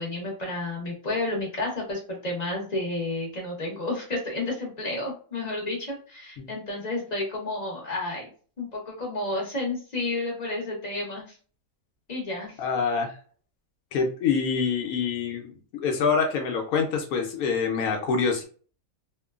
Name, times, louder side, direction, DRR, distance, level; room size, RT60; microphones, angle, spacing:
voice 1, 0.0-8.3 8.6-11.2 12.1-12.6, left 2 dB, 35° left, -2 dB, 0.9 m, -31 dB
voice 2, 12.6-13.2 13.9-18.4, left 5 dB, 85° left, 3 dB, 1.1 m, -26 dB
2.9 x 2.1 x 2.3 m, 0.41 s
omnidirectional pair, 1.5 m